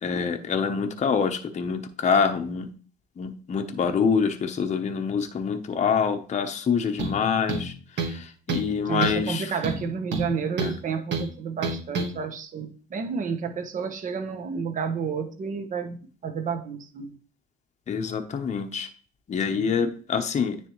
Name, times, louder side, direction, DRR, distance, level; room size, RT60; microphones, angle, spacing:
voice 1, 0.0-2.7 3.2-7.7 8.0-9.6 10.6-10.7 17.9-18.9 19.3-20.7, left 6 dB, 35° left, 5 dB, 0.9 m, -26 dB
sound 1, 7.0-7.2 7.5-8.2 8.5-8.7 9.0-9.3 9.6-10.8 11.1-11.3 11.6-12.1, right 4 dB, 60° right, 1.5 m, -28 dB
voice 2, 8.9-17.1 19.6-19.7, right 6 dB, 40° right, 7 dB, 1.1 m, -31 dB
9.6 x 3.4 x 3.1 m, 0.41 s
supercardioid pair, 95°, 21 cm